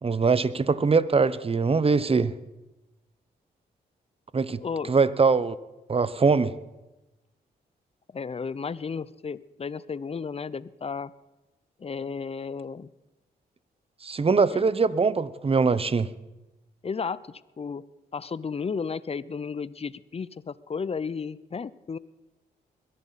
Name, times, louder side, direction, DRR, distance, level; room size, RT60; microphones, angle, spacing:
voice 1, 0.0-2.3 4.3-4.6 4.9-5.6 5.9-6.5 14.0-16.1, right 4 dB, 30° right, 16 dB, 0.8 m, -22 dB
voice 2, 4.6-5.0 8.1-11.1 11.8-12.9 14.5-14.7 16.8-17.8 18.1-22.0, left 5 dB, 35° left, 19 dB, 0.6 m, -33 dB
21.5 x 11.0 x 4.1 m, 1.0 s
supercardioid pair, 55°, 18 cm